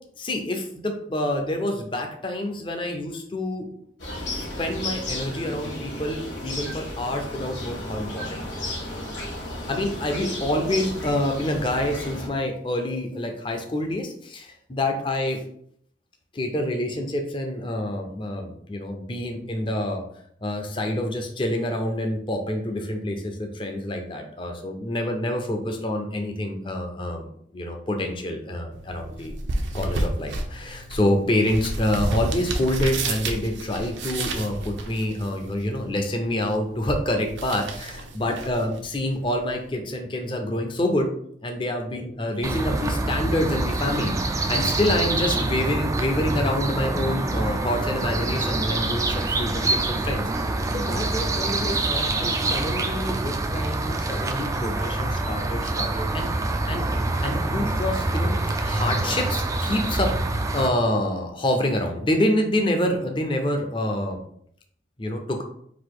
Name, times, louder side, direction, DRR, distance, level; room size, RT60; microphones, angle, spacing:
voice 1, 0.2-3.7 4.3-8.4 9.7-15.4 16.3-20.0 20.4-29.4 29.7-41.1 41.4-50.3 50.7-56.3 56.7-58.3 58.6-60.1 60.5-64.2 65.0-65.4, left 1 dB, 25° left, 4 dB, 0.6 m, -27 dB
sound 1, 4.0-12.3, left 1 dB, 85° left, 1.6 m, -33 dB
sound 2, 28.7-39.7, right 2 dB, 80° right, 0.7 m, -32 dB
sound 3, 42.4-60.7, right 2 dB, 15° right, 0.3 m, -26 dB
4.0 x 2.6 x 4.7 m, 0.66 s
head